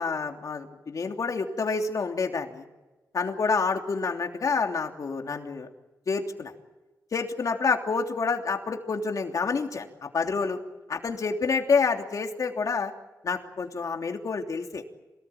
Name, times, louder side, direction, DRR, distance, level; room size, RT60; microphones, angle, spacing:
voice 1, 0.0-2.6 3.1-5.7 6.1-6.5 7.1-10.6 10.9-12.9 13.2-14.8, left 4 dB, 65° left, 3 dB, 3.1 m, -28 dB
26.5 x 19.0 x 8.9 m, 1.1 s
wide cardioid pair, 95°, 6 cm